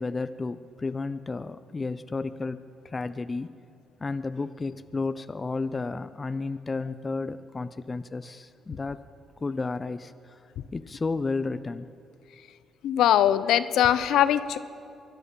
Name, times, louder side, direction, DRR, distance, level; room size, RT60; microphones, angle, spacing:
voice 1, 0.0-3.5 4.0-9.0 9.4-10.4 10.7-11.9, left 3 dB, 30° left, 11 dB, 0.5 m, -32 dB
voice 2, 12.8-14.6, left 11 dB, 80° left, 13 dB, 0.7 m, -21 dB
24.0 x 11.0 x 5.5 m, 2.5 s
cardioid pair, 90°, 0 cm